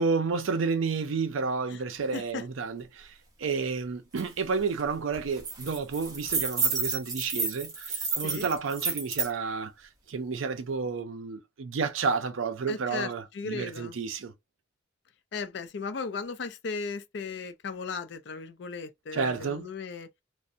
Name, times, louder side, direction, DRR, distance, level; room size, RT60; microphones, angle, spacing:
voice 1, 0.0-14.3 19.1-19.7, right 4 dB, 80° right, 0.5 m, -31 dB
voice 2, 2.1-2.4 8.2-8.5 12.7-13.9 15.3-20.1, left 4 dB, 55° left, 0.4 m, -36 dB
sound 1, 4.2-4.3 4.6-4.8 5.1-9.3, right 4 dB, 15° right, 0.6 m, -31 dB
2.6 x 2.1 x 2.5 m
head